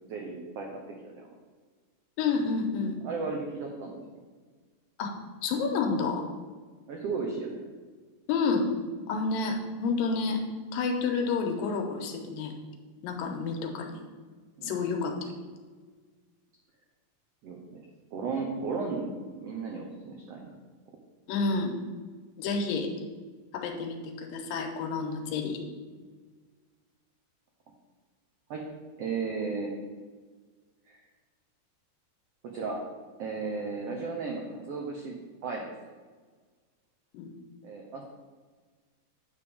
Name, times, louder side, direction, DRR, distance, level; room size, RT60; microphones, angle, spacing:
voice 1, 0.1-1.2 3.0-4.0 6.9-7.6 13.2-13.4 14.6-14.7 17.4-17.8 18.1-19.1 19.4-20.6 28.5-28.6 29.0-29.7 30.9-31.0 32.4-32.8 33.2-35.7 37.6-38.0, right 4 dB, 85° right, 1 dB, 1.3 m, -35 dB
voice 2, 2.2-3.0 5.0-5.1 5.4-6.3 8.3-8.7 9.1-10.4 10.7-12.5 13.0-14.0 14.6-15.4 21.3-21.7 22.4-22.9 23.5-25.6 37.1-37.3, left 4 dB, 85° left, 3 dB, 2.6 m, -29 dB
9.6 x 3.5 x 6.9 m, 1.5 s
omnidirectional pair, 4.0 m